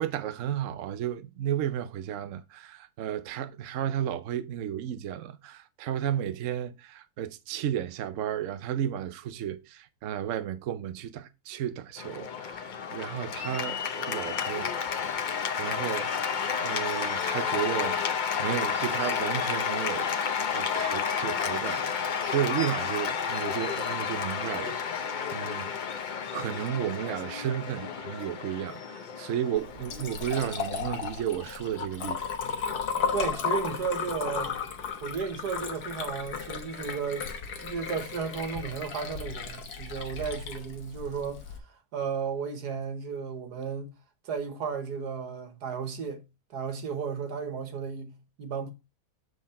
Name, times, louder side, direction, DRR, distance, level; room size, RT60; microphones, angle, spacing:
voice 1, 0.0-14.7 15.3-25.7 26.1-32.2, right 10 dB, 65° right, 0.9 m, -33 dB
Cheering / Applause, 12.0-31.2, left 7 dB, 60° left, 0.5 m, -31 dB
Liquid, 29.6-41.6, left 6 dB, 75° left, 1.7 m, -35 dB
voice 2, 33.1-34.5 35.0-37.3 37.6-43.9 44.2-46.2 46.5-48.7, right 6 dB, 80° right, 1.8 m, -34 dB
7.6 x 4.7 x 4.2 m
omnidirectional pair, 1.7 m